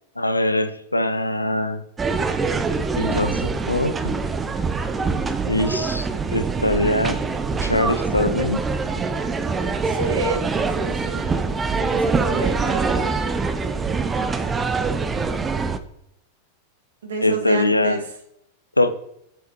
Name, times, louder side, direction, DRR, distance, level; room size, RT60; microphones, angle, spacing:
voice 1, 0.2-1.8 3.0-4.2 5.5-7.2 7.6-8.6 17.2-18.0 18.8-18.9, left 1 dB, 85° left, 11 dB, 0.7 m, -22 dB
sound 1, 2.0-15.8, right 4 dB, 15° right, 0.7 m, -24 dB
voice 2, 9.9-11.3 11.8-13.2 17.0-18.0, right 2 dB, 65° right, 6 dB, 1.5 m, -29 dB
9.2 x 8.1 x 3.0 m, 0.76 s
figure-of-eight pair, 90°, 0 cm